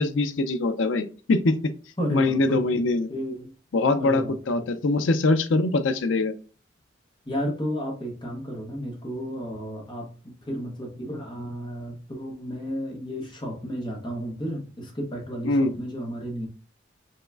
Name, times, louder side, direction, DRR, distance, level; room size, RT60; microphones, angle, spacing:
voice 1, 0.0-1.5 2.1-3.1 3.7-6.3 15.4-15.7, left 2 dB, 80° left, 10 dB, 0.5 m, -23 dB
voice 2, 2.0-3.5 4.0-4.6 7.3-16.5, equal, 25° left, 1 dB, 1.1 m, -33 dB
5.5 x 3.0 x 2.4 m, 0.37 s
head